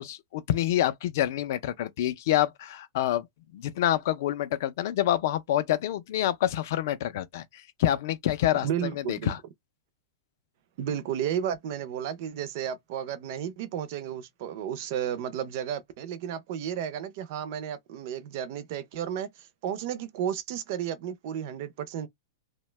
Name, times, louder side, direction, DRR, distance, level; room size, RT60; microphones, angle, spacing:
voice 1, 0.0-3.3 3.5-7.4 7.8-8.7 9.1-9.4, left 12 dB, 45° left, 0.4 m, -27 dB
voice 2, 8.6-9.3 10.8-22.1, right 9 dB, 35° right, 0.4 m, -33 dB
2.7 x 2.1 x 3.1 m
supercardioid pair, 180°, 2 cm